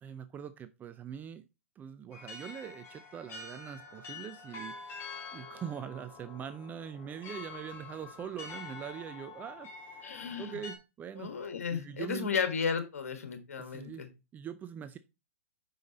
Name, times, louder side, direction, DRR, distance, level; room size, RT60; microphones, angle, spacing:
voice 1, 0.0-1.5 1.8-11.3 11.7-12.4 13.6-15.0, right 8 dB, 20° right, 0.4 m, -43 dB
sound 1, 2.1-10.7, left 4 dB, 35° left, 2.5 m, -47 dB
voice 2, 10.0-10.6 11.2-14.1, left 6 dB, 80° left, 1.5 m, -34 dB
5.5 x 5.2 x 4.0 m
hypercardioid pair, 115°, 8 cm